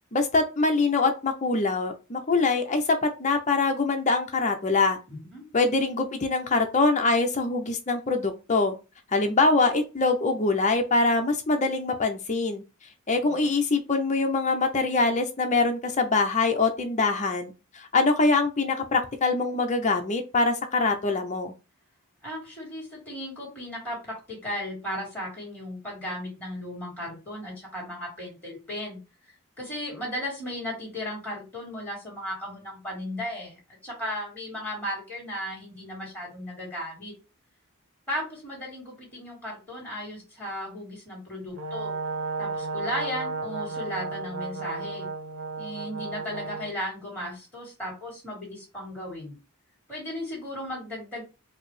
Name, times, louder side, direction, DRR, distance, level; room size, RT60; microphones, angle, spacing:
voice 1, 0.1-5.0 5.5-8.7 9.1-12.6 13.1-21.5, left 3 dB, 35° left, 5 dB, 0.6 m, -24 dB
voice 2, 5.1-5.5 13.2-13.5 22.2-29.0 29.6-33.6 33.8-37.1 38.1-42.0 42.4-45.1 45.6-49.4 49.9-51.2, left 1 dB, 10° left, -3 dB, 2.0 m, -35 dB
Brass instrument, 41.6-46.7, right 3 dB, 65° right, 0.9 m, -33 dB
4.7 x 2.0 x 3.2 m, 0.30 s
head